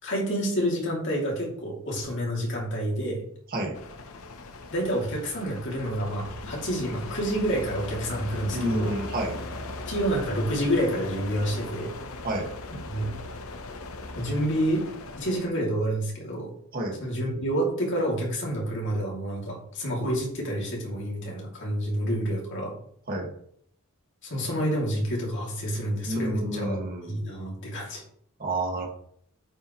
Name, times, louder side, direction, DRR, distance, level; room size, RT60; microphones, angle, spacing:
voice 1, 0.0-3.2 4.7-8.9 9.9-11.9 12.9-13.1 14.1-14.8 15.2-16.5 17.0-22.8 24.2-26.8 27.1-28.0, equal, 60° left, -2 dB, 2.8 m, -28 dB
sound 1, 3.7-15.5, left 2 dB, 75° left, 0.9 m, -38 dB
voice 2, 8.5-9.4 12.2-12.5 16.7-17.0 23.1-23.3 26.0-27.2 28.4-28.9, right 1 dB, 45° right, 0 dB, 2.0 m, -29 dB
8.9 x 5.7 x 3.2 m, 0.65 s
head